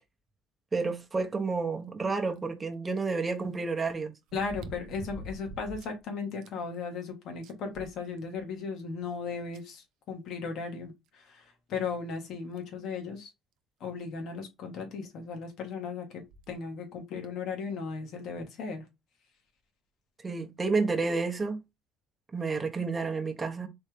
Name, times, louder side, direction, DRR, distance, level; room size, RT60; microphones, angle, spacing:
voice 1, 0.7-4.1 20.2-21.6 22.3-23.7, right 4 dB, 20° right, 0.9 m, -30 dB
sound 1, 2.4-2.5 4.3-6.0 6.4-6.5 7.0-7.1 7.4-8.5 9.5-9.6 11.1-11.2 11.7-11.8 12.6-12.8 14.1-14.2 14.4-14.5 16.2-16.5 17.2-17.3, right 2 dB, 75° right, 0.6 m, -45 dB
voice 2, 4.3-13.3 13.8-16.2 16.5-18.8, left 5 dB, 60° left, 1.6 m, -36 dB
4.2 x 3.2 x 3.5 m
cardioid pair, 130°, 0 cm